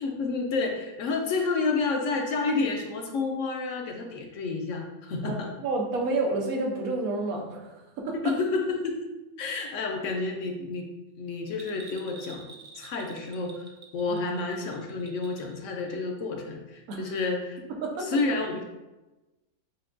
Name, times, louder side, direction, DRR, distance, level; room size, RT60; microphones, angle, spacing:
voice 1, 0.0-5.5 8.1-9.0 9.4-10.9 11.2-12.5 12.7-13.7 13.9-17.6 18.0-18.6, left 3 dB, 70° left, 2 dB, 0.9 m, -30 dB
voice 2, 5.2-8.1 14.1-14.2 16.9-17.1 17.8-18.1, right 2 dB, 90° right, 0 dB, 1.1 m, -30 dB
Bell, 11.5-15.6 15.9-16.0, right 4 dB, 65° right, 0.4 m, -48 dB
5.9 x 2.2 x 2.5 m, 1.1 s
omnidirectional pair, 1.5 m